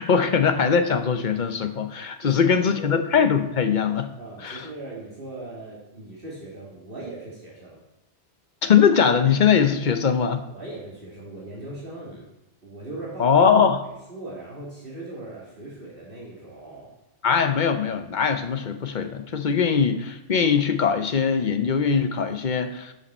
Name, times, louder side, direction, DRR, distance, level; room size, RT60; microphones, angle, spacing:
voice 1, 0.0-4.1 4.4-4.6 8.6-10.4 13.2-13.8 17.2-22.9, left 6 dB, 50° left, 8 dB, 0.8 m, -21 dB
voice 2, 2.2-3.0 4.2-7.8 10.5-12.2 12.6-13.4 13.8-16.9, right 2 dB, 50° right, -5 dB, 2.3 m, -39 dB
11.5 x 5.6 x 4.3 m, 0.93 s
omnidirectional pair, 1.1 m